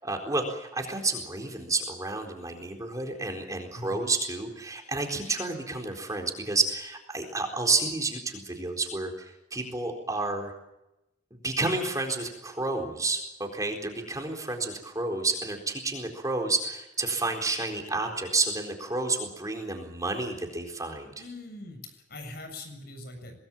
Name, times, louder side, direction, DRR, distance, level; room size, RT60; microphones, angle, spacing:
voice 1, 0.0-9.1 9.5-10.5 11.3-21.1, right 3 dB, 20° right, 2 dB, 4.1 m, -30 dB
voice 2, 21.2-23.4, left 2 dB, 60° left, 6 dB, 7.4 m, -42 dB
25.5 x 19.5 x 7.3 m, 0.90 s
head